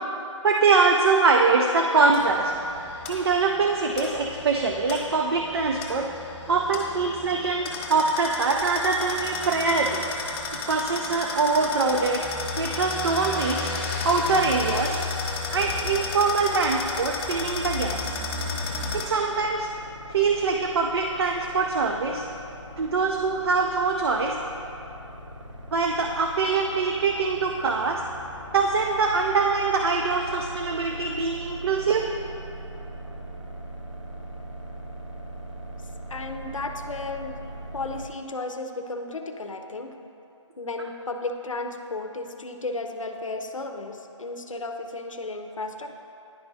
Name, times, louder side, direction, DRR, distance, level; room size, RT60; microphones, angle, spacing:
voice 1, 0.4-2.5 3.1-6.1 6.5-10.0 10.7-12.3 12.6-13.7 14.0-15.0 15.5-18.1 18.9-19.7 20.1-22.2 22.8-24.4 25.7-28.0 28.5-32.0, right 4 dB, 55° right, 2 dB, 0.5 m, -23 dB
sound 1, 2.1-19.1, left 3 dB, 30° left, 1.1 m, -33 dB
sound 2, 18.9-38.1, right 1 dB, 75° right, 1.2 m, -40 dB
voice 2, 36.1-37.4 37.7-40.0 40.6-45.9, left 2 dB, 85° left, 5 dB, 0.6 m, -34 dB
10.5 x 4.6 x 2.7 m, 2.8 s
figure-of-eight pair, 150°, 16 cm